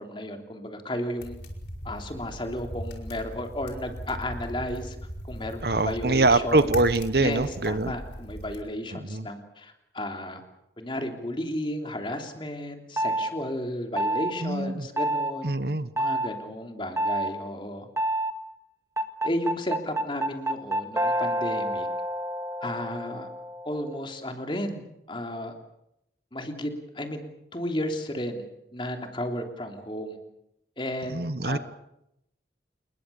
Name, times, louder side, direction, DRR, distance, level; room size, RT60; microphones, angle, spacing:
voice 1, 0.0-1.4 1.8-5.0 5.2-6.7 7.2-10.4 10.8-15.5 16.0-17.9 19.2-21.9 22.6-23.3 23.6-25.5 26.3-27.2 27.5-28.5 28.7-30.2 30.8-31.6, left 1 dB, 25° left, 4 dB, 3.3 m, -33 dB
sound 1, 1.2-8.6, equal, 70° left, 5.1 m, -39 dB
voice 2, 5.6-8.0 8.9-9.3 14.4-14.9 15.4-15.9 31.1-31.6, right 2 dB, 60° right, 13 dB, 1.2 m, -24 dB
sound 2, 13.0-13.3 14.0-14.3 15.0-15.3 16.0-16.3 17.0-17.3 18.0-18.3 19.0-24.0, right 1 dB, 15° right, 1.9 m, -28 dB
28.5 x 21.5 x 7.1 m, 0.81 s
head